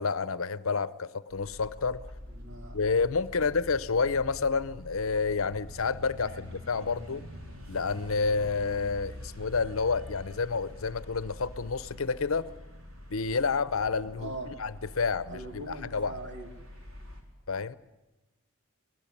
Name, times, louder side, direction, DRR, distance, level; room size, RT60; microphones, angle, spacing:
voice 1, 0.0-2.0 2.7-7.2 7.7-12.5 13.1-14.3 14.6-16.1 17.5-17.8, left 4 dB, 70° left, 0.8 m, -29 dB
sound 1, 1.3-17.2, left 1 dB, 70° right, 4.5 m, -45 dB
voice 2, 2.3-2.8 3.4-3.5 6.3-6.4 14.2-14.5 15.3-16.5, right 2 dB, 55° right, 3.9 m, -41 dB
25.0 x 19.5 x 8.7 m
head